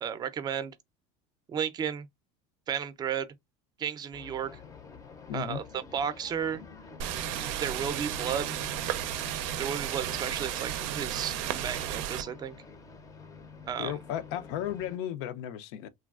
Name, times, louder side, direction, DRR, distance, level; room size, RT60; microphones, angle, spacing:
voice 1, 0.0-0.7 1.5-2.1 2.7-3.3 3.8-4.6 5.3-6.6 7.6-8.6 9.6-12.6 13.7-14.0, right 8 dB, 25° right, 0.5 m, -33 dB
sound 1, 4.1-15.0, left 4 dB, 20° left, 0.5 m, -48 dB
voice 2, 5.3-5.6 13.8-15.9, left 11 dB, 75° left, 0.5 m, -34 dB
sound 2, 7.0-12.2, right 11 dB, 80° right, 0.5 m, -33 dB
3.3 x 2.2 x 2.3 m
supercardioid pair, 130°, 15 cm